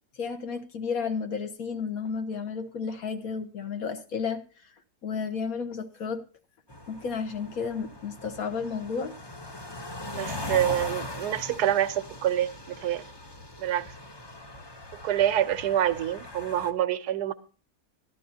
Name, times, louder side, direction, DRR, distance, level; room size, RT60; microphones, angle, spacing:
voice 1, 0.2-4.4 5.0-6.2 6.9-9.1, left 5 dB, 65° left, 7 dB, 1.6 m, -32 dB
sound 1, 6.7-16.7, left 2 dB, 25° left, 0.6 m, -40 dB
voice 2, 10.1-13.0 13.6-13.8 15.0-17.3, right 11 dB, 85° right, 13 dB, 1.3 m, -26 dB
15.0 x 11.5 x 2.7 m, 0.39 s
omnidirectional pair, 1.7 m